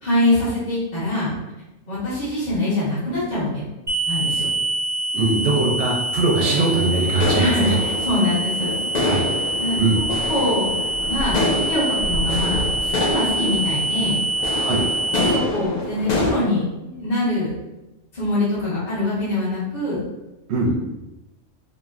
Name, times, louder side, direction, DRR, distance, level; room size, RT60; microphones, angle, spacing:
voice 1, 0.0-1.3 1.9-3.7 4.1-4.5 7.3-8.8 9.6-10.7 11.0-14.2 15.2-17.5 18.1-20.0, left 1 dB, 35° left, -11 dB, 1.0 m, -24 dB
sound 1, 3.9-15.3, right 2 dB, 15° right, 0.3 m, -25 dB
voice 2, 5.1-7.8 9.0-9.2 9.7-10.0 14.6-14.8 20.5-20.7, right 3 dB, 65° right, -1 dB, 0.7 m, -21 dB
sound 2, 6.4-16.3, left 2 dB, 80° left, 0.4 m, -26 dB
2.9 x 2.5 x 2.4 m, 0.99 s
omnidirectional pair, 1.4 m